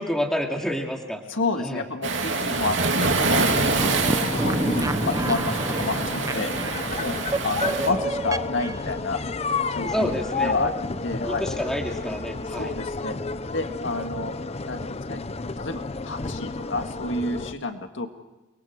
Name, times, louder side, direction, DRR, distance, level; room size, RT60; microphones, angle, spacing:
voice 1, 0.0-1.2 1.6-1.8 7.6-8.0 9.8-10.7 11.3-12.7, equal, 5° left, 1 dB, 2.6 m, -29 dB
voice 2, 1.3-6.5 7.0-7.2 7.4-9.2 9.7-10.1 10.4-10.7 11.0-11.5 12.5-13.2 13.5-14.3 14.7-15.2 15.6-18.1, left 3 dB, 75° left, 6 dB, 1.9 m, -30 dB
Waves surf, 2.0-7.9, right 3 dB, 70° right, 2.9 m, -26 dB
sound 1, 3.4-17.5, left 3 dB, 30° left, 0.7 m, -31 dB
sound 2, 3.8-8.9, right 2 dB, 15° right, 0.7 m, -29 dB
30.0 x 23.5 x 4.8 m, 1.1 s
head